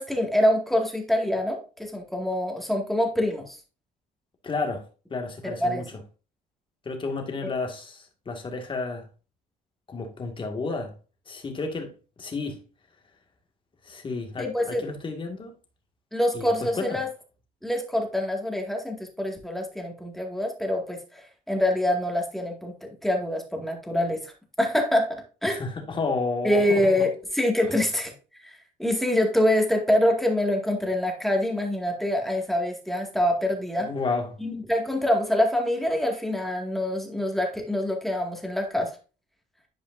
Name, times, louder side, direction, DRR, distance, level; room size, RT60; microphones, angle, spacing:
voice 1, 0.0-3.6 5.4-5.8 7.4-7.5 14.4-14.9 16.1-17.1 17.6-24.3 24.6-25.6 26.4-28.1 28.4-33.9 34.4-38.9, left 1 dB, ahead, 2.0 m, -25 dB
voice 2, 4.4-4.8 5.1-5.8 6.9-9.0 9.9-10.9 11.3-11.9 12.2-12.6 13.8-15.5 16.3-17.0 25.5-26.9 27.6-27.8 33.8-34.3, left 3 dB, 30° left, 2.0 m, -31 dB
11.0 x 5.0 x 2.6 m
cardioid pair, 110°, 17 cm